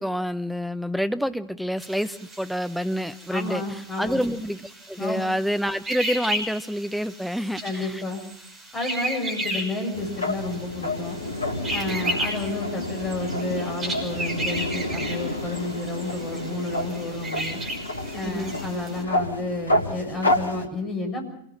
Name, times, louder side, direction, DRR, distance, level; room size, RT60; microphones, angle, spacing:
voice 1, 0.0-8.0 18.2-18.6, equal, ahead, 10 dB, 1.1 m, -28 dB
sound 1, 1.8-19.0, right 1 dB, 20° right, 6.1 m, -35 dB
voice 2, 3.3-4.2 5.0-5.2 7.6-8.2 8.7-11.2 11.7-17.6 18.1-21.3, left 2 dB, 25° left, 3 dB, 7.4 m, -31 dB
sound 2, 9.9-20.7, left 1 dB, 80° left, 1.9 m, -29 dB
27.0 x 19.0 x 6.0 m, 0.70 s
figure-of-eight pair, 90°, 0 cm